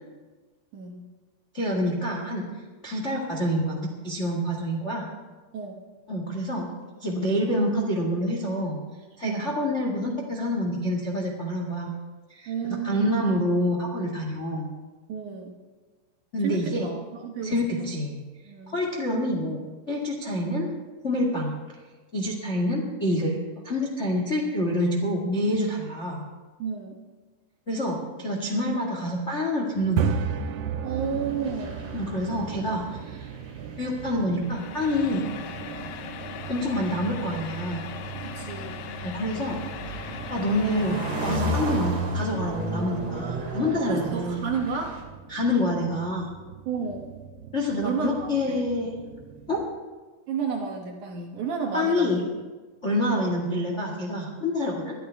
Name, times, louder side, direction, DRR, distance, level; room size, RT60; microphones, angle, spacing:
voice 1, 0.7-1.1 5.5-5.8 9.2-9.5 12.5-13.1 15.1-15.5 16.4-17.9 18.5-18.8 26.6-27.0 30.8-32.0 38.2-38.8 43.9-45.0 46.7-47.1 47.8-48.6 50.3-52.2, right 6 dB, 65° right, 1 dB, 2.2 m, -32 dB
voice 2, 1.5-2.5 2.8-5.1 6.1-6.7 7.0-8.8 9.2-11.9 12.3-12.5 12.8-14.7 16.3-16.9 17.4-18.1 18.7-19.6 19.9-20.7 21.0-21.5 22.1-23.4 23.6-26.3 27.7-30.2 31.9-33.3 33.8-35.3 36.5-37.9 39.0-39.6 39.9-44.4 45.3-46.3 47.5-49.0 49.5-49.6 51.7-52.2 52.8-54.9, left 1 dB, 40° left, -1 dB, 1.0 m, -27 dB
sound 1, 29.8-49.7, right 7 dB, 85° right, 2.7 m, -37 dB
sound 2, 31.0-32.9 33.2-34.5 35.5-35.7 37.8-45.0, right 1 dB, 45° right, 3.2 m, -33 dB
sound 3, 34.4-41.4, left 8 dB, 75° left, 2.3 m, -39 dB
22.5 x 12.5 x 3.5 m, 1.3 s
omnidirectional pair, 4.7 m